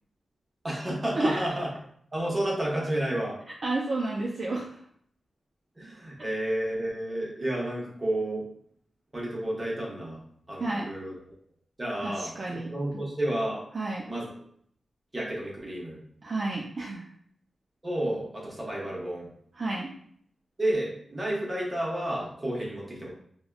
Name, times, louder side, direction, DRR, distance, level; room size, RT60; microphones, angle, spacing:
voice 1, 0.6-1.7 2.1-3.4 5.8-8.4 9.1-10.2 10.5-11.2 11.8-12.3 12.7-13.6 14.1-14.3 15.1-16.0 17.8-19.3 20.6-23.1, right 1 dB, 20° right, -4 dB, 0.9 m, -31 dB
voice 2, 3.6-4.6 10.6-10.9 12.0-12.7 13.7-14.0 16.2-17.0 19.6-19.9, right 2 dB, 50° right, -3 dB, 0.4 m, -30 dB
3.4 x 2.1 x 2.3 m, 0.64 s
wide cardioid pair, 105°, 0 cm